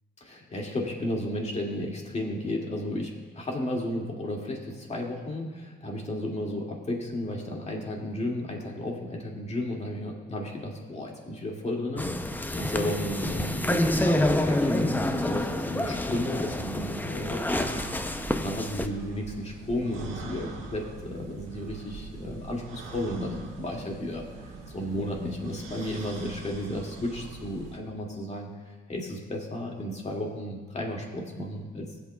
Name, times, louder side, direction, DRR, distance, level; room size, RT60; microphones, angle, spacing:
voice 1, 0.2-18.1 18.4-24.3 24.7-28.5 28.9-31.9, left 1 dB, 35° left, -1 dB, 2.2 m, -33 dB
sound 1, 12.0-18.9, left 1 dB, 10° left, 0.5 m, -28 dB
sound 2, 17.5-27.8, right 3 dB, 85° right, 1.6 m, -42 dB
18.0 x 8.3 x 2.3 m, 1.4 s
cardioid pair, 90°, 20 cm